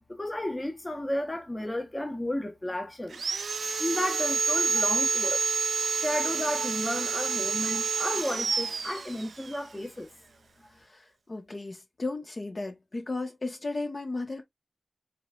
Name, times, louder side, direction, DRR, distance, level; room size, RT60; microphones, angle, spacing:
voice 1, 0.1-3.2 3.8-5.5 5.9-10.1, left 1 dB, 25° left, 1.0 m, -33 dB
Sawing, 3.1-9.6, right 4 dB, 80° right, 0.3 m, -29 dB
voice 2, 10.8-14.4, left 2 dB, 50° left, 1.2 m, -35 dB
4.8 x 3.2 x 2.4 m
cardioid pair, 50°, 0 cm